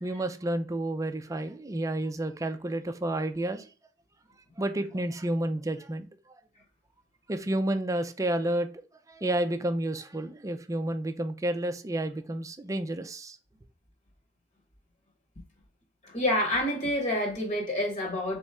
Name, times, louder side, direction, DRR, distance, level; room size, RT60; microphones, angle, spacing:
voice 1, 0.0-3.7 4.6-6.1 7.3-8.7 9.1-13.4, right 1 dB, 15° right, 0.4 m, -30 dB
voice 2, 16.0-18.4, left 1 dB, 40° left, 1.3 m, -28 dB
4.1 x 3.1 x 3.5 m
head